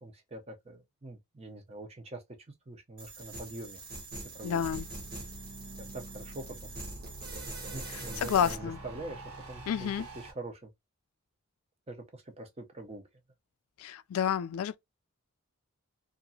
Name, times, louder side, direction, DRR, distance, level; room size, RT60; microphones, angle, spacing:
voice 1, 0.0-2.2 2.7-3.8 4.3-4.7 5.8-6.5 7.7-10.7 11.9-13.0, right 2 dB, 30° right, 0.6 m, -44 dB
sound 1, 3.0-8.5, right 2 dB, 45° right, 1.1 m, -43 dB
sound 2, 4.2-10.3, right 2 dB, 85° right, 1.1 m, -47 dB
voice 2, 4.4-4.9 8.2-8.8 9.7-10.1 13.8-14.8, left 8 dB, 80° left, 0.3 m, -29 dB
2.8 x 2.5 x 2.7 m
head